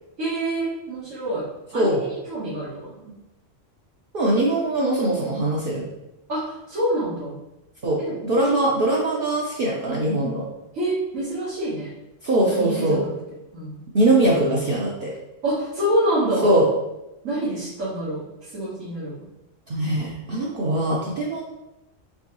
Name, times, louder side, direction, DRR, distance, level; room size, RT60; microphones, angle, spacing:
voice 1, 0.2-3.1 6.3-7.4 8.0-8.5 10.7-11.9 12.5-13.1 13.5-13.8 15.4-16.5 17.2-19.2, right 1 dB, 90° right, -10 dB, 1.7 m, -27 dB
voice 2, 4.1-5.9 7.8-10.4 12.2-13.0 13.9-15.1 16.4-16.7 19.7-21.4, right 1 dB, 50° right, -4 dB, 0.8 m, -21 dB
4.4 x 3.3 x 3.0 m, 0.93 s
omnidirectional pair, 1.3 m